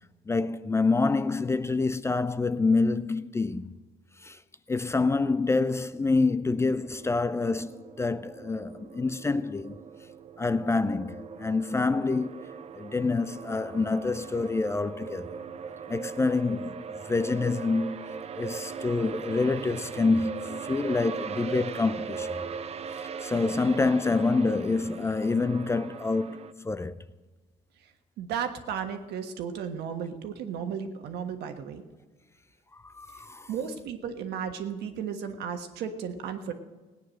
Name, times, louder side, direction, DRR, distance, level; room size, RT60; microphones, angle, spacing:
voice 1, 0.3-3.7 4.2-4.4 4.7-9.8 10.4-15.4 15.9-16.7 17.1-22.4 23.2-26.9 32.8-33.5, left 3 dB, 15° left, 0.4 m, -27 dB
sound 1, 6.8-26.5, right 6 dB, 40° right, 0.6 m, -39 dB
voice 2, 28.2-31.8 33.5-36.5, right 7 dB, 75° right, 1.4 m, -34 dB
17.0 x 9.3 x 6.4 m
cardioid pair, 110°, 17 cm